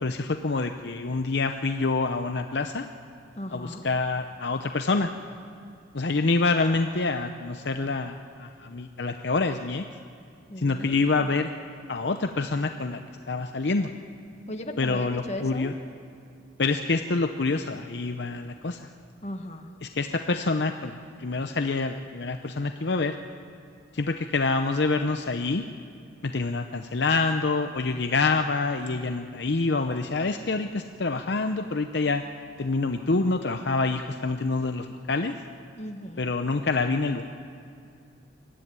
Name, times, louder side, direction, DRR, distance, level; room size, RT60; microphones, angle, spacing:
voice 1, 0.0-2.9 3.5-5.1 5.9-9.9 10.6-11.5 11.9-13.0 13.3-13.9 14.8-15.7 16.6-18.9 19.8-23.2 23.9-25.6 26.2-32.2 32.6-35.3 36.2-37.3, left 3 dB, 65° left, 6 dB, 0.7 m, -26 dB
voice 2, 3.4-3.8 10.5-11.3 14.5-15.8 19.2-19.7 35.8-36.3, left 1 dB, 35° left, 4 dB, 1.6 m, -37 dB
23.5 x 14.0 x 9.6 m, 2.5 s
head